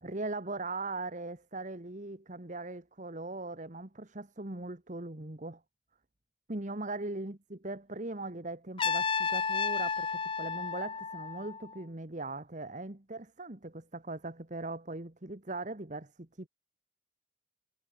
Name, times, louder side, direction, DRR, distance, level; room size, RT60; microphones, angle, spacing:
voice 1, 0.0-5.6 6.5-16.5, right 2 dB, 40° right, 1.7 m, -40 dB
Trumpet, 8.8-11.8, left 5 dB, 30° left, 0.7 m, -32 dB
head